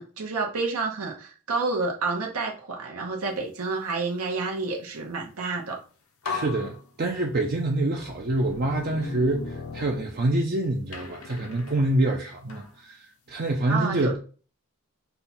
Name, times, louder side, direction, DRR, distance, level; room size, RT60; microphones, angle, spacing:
voice 1, 0.0-5.8 13.7-14.2, right 3 dB, 75° right, 0.9 m, -29 dB
sound 1, 5.7-5.8 6.2-7.5 8.2-10.5 10.9-12.7, left 4 dB, 70° left, 0.8 m, -38 dB
voice 2, 6.2-14.2, right 2 dB, 45° right, 0.5 m, -26 dB
5.4 x 2.3 x 4.2 m
head